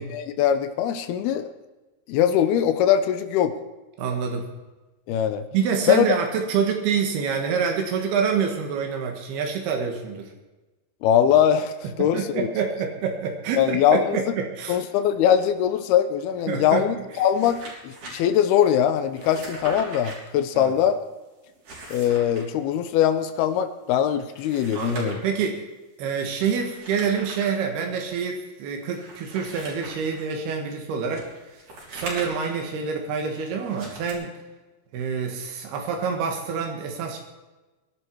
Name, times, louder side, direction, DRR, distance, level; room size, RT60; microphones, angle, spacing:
voice 1, 0.0-1.5 2.1-3.5 5.1-5.4 5.9-6.1 11.0-12.5 13.6-14.2 14.7-21.0 21.9-25.2, left 9 dB, 85° left, 9 dB, 2.8 m, -21 dB
voice 2, 4.0-4.5 5.5-10.3 12.0-14.8 16.5-16.8 20.6-20.7 24.8-25.6 26.0-31.3 31.9-34.3 34.9-37.2, right 6 dB, 90° right, 3 dB, 3.6 m, -27 dB
sound 1, 17.1-18.1 19.1-20.2 21.5-22.4 24.2-25.3 26.6-27.6 28.1-28.2 28.9-30.3 31.1-32.6 33.6-34.1, right 2 dB, 55° right, 5.4 m, -40 dB
22.5 x 11.5 x 4.7 m, 1.1 s
omnidirectional pair, 4.4 m